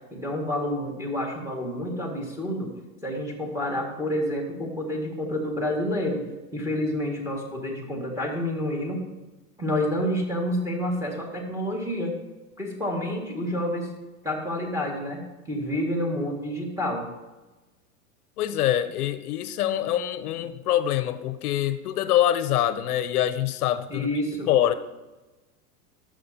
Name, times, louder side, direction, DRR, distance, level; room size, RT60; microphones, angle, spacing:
voice 1, 0.1-2.7 3.0-6.2 6.5-9.0 9.6-12.2 12.6-13.9 14.2-17.1 23.9-24.5, left 1 dB, 5° right, 1.9 m, -29 dB
voice 2, 18.4-24.1 24.5-24.7, left 12 dB, 75° left, 0.7 m, -24 dB
11.5 x 6.4 x 2.8 m
hypercardioid pair, 120°, 45 cm